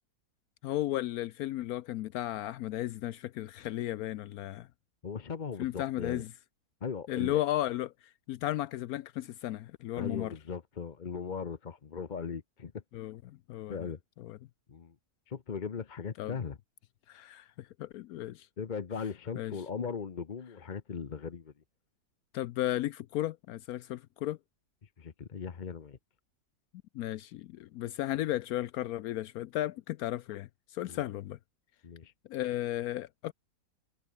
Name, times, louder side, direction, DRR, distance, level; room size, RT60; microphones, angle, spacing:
voice 1, 0.6-4.7 5.6-6.3 7.1-7.9 8.3-10.3 12.9-13.9 14.2-14.4 16.2-16.3 17.1-18.5 19.4-19.6 22.3-24.4 26.9-31.4 32.3-33.3, left 14 dB, 75° left, 1.0 m, -34 dB
voice 2, 5.0-6.2 6.8-7.4 10.0-12.8 13.7-14.0 14.7-14.9 15.3-16.6 18.6-21.5 25.0-26.0 30.9-31.0 31.8-32.1, left 6 dB, 35° left, 0.9 m, -38 dB
omnidirectional pair, 1.6 m